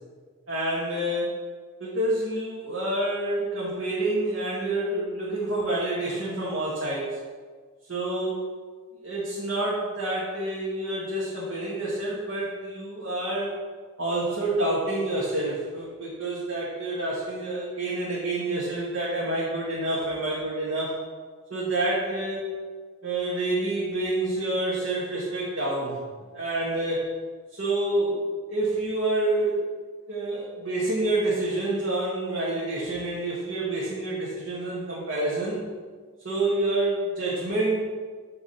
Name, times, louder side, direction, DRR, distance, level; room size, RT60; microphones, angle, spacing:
voice 1, 0.5-1.3 1.8-7.1 7.9-8.4 9.0-13.5 14.0-21.0 21.5-22.5 23.0-26.0 26.3-27.0 27.5-28.2 28.5-29.6 30.1-35.6 36.2-37.8, right 2 dB, 65° right, -7 dB, 1.7 m, -28 dB
7.4 x 4.6 x 5.7 m, 1.5 s
head